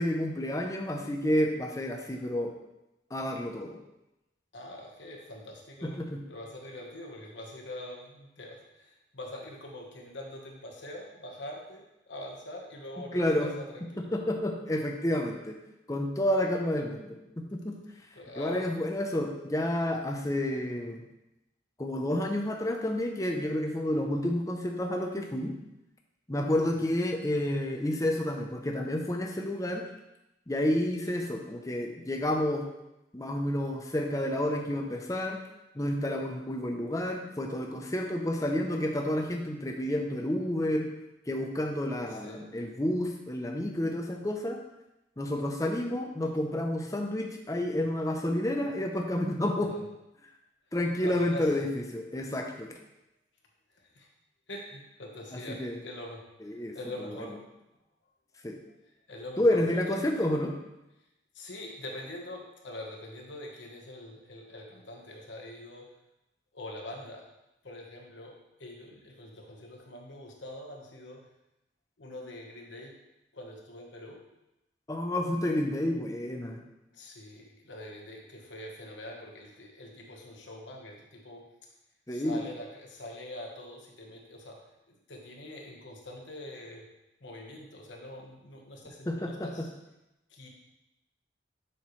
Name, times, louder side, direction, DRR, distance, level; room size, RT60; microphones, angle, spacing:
voice 1, 0.0-2.5 3.1-3.8 5.8-6.2 13.1-13.5 14.0-15.6 15.9-17.8 18.4-21.0 21.8-25.5 26.3-29.8 30.5-32.7 33.1-35.4 35.7-40.9 41.3-44.6 45.2-49.8 50.7-52.7 55.6-55.8 56.4-56.8 57.1-57.2 58.4-58.6 59.4-60.5 74.9-76.6 82.1-82.4 89.1-89.7, left 1 dB, 15° left, 2 dB, 0.7 m, -30 dB
voice 2, 4.5-5.9 6.3-14.1 18.1-18.8 26.8-26.9 31.0-31.1 42.1-42.4 49.7-49.8 50.8-51.6 53.8-54.1 54.5-57.3 58.6-58.7 59.1-59.6 59.9-60.3 61.3-65.9 66.5-67.2 67.6-71.2 72.0-72.9 73.3-74.2 76.9-81.4 82.1-84.6 85.1-86.8 87.2-89.7 90.3-90.5, left 1 dB, 80° left, 0 dB, 1.2 m, -44 dB
7.2 x 5.8 x 3.2 m, 0.93 s
head